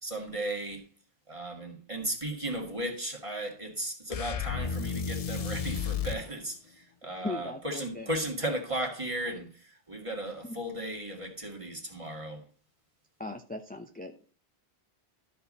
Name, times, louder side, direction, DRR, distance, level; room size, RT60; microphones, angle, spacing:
voice 1, 0.0-0.8 1.3-6.6 7.0-9.5 9.9-12.4, right 1 dB, 30° right, 2.2 m, -35 dB
sound 1, 4.1-6.3, left 6 dB, 45° left, 0.5 m, -32 dB
voice 2, 7.2-8.1 10.4-10.6 13.2-14.1, left 2 dB, 10° left, 0.7 m, -38 dB
13.0 x 4.7 x 5.5 m
omnidirectional pair, 1.1 m